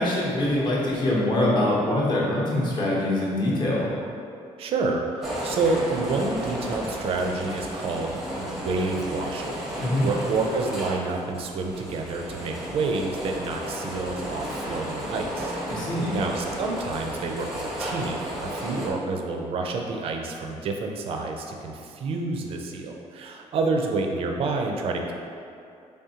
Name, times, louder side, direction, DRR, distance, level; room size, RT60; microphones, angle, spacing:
voice 1, 0.0-3.9 9.8-10.1 15.7-16.1, left 1 dB, 35° left, -5 dB, 0.8 m, -24 dB
voice 2, 4.6-25.1, right 3 dB, 50° right, 2 dB, 0.4 m, -29 dB
sound 1, 5.2-18.9, right 1 dB, 5° right, 0.6 m, -33 dB
3.6 x 3.4 x 2.8 m, 2.5 s
cardioid pair, 150°, 12 cm